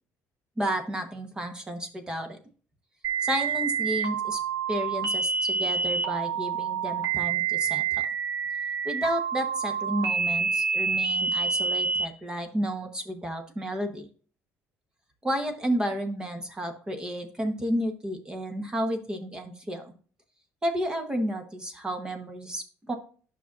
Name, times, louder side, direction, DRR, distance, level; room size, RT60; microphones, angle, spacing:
voice 1, 0.6-2.4 3.2-4.4 4.7-8.1 8.8-14.1 15.2-19.9 20.6-22.9, equal, 15° right, 6 dB, 1.0 m, -31 dB
sound 1, 3.0-12.1, right 6 dB, 60° right, 1.4 m, -28 dB
9.9 x 5.9 x 2.5 m, 0.41 s
cardioid pair, 145°, 6 cm